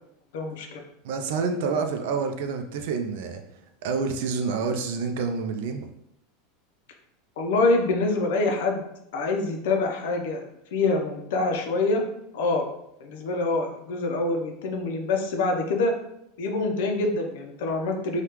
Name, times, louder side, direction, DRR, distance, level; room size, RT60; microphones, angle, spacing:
voice 1, 0.3-0.8 7.4-8.8 9.1-10.4 10.7-12.0 12.3-12.7 13.0-15.9 16.4-18.2, left 3 dB, 75° left, 3 dB, 0.6 m, -25 dB
voice 2, 1.0-3.4 3.8-5.9, right 5 dB, 65° right, 6 dB, 0.4 m, -28 dB
3.4 x 2.3 x 2.9 m, 0.80 s
supercardioid pair, 155°, 0 cm